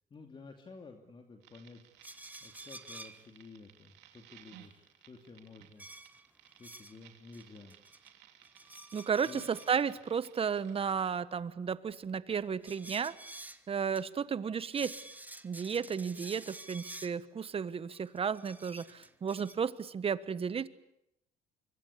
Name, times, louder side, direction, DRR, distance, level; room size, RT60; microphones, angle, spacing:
voice 1, 0.1-5.9 6.6-7.8 8.8-8.9 9.2-9.5, left 4 dB, 30° left, 4 dB, 2.6 m, -52 dB
sound 1, 1.4-11.1, right 12 dB, 85° right, 3.1 m, -59 dB
sound 2, 2.0-3.2 5.8-7.0 7.3-8.1 8.4-9.9 12.6-13.6 13.9-14.0 14.3-14.4 14.7-17.2 17.9-19.5, right 2 dB, 10° right, 1.6 m, -49 dB
voice 2, 8.9-13.2 13.7-15.0 15.4-20.7, right 6 dB, 35° right, 15 dB, 1.3 m, -33 dB
25.0 x 24.5 x 8.5 m, 0.80 s
cardioid pair, 110°, 17 cm